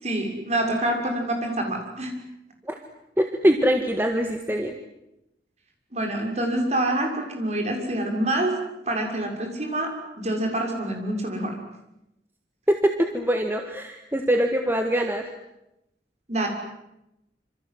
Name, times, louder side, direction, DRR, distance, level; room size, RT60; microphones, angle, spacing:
voice 1, 0.0-2.1 5.9-8.5 8.8-9.9 10.2-11.5 16.3-16.5, right 1 dB, 40° right, 2 dB, 6.6 m, -26 dB
voice 2, 3.2-4.7 12.7-15.2, equal, 10° right, 4 dB, 1.8 m, -23 dB
27.0 x 27.0 x 7.9 m, 0.87 s
head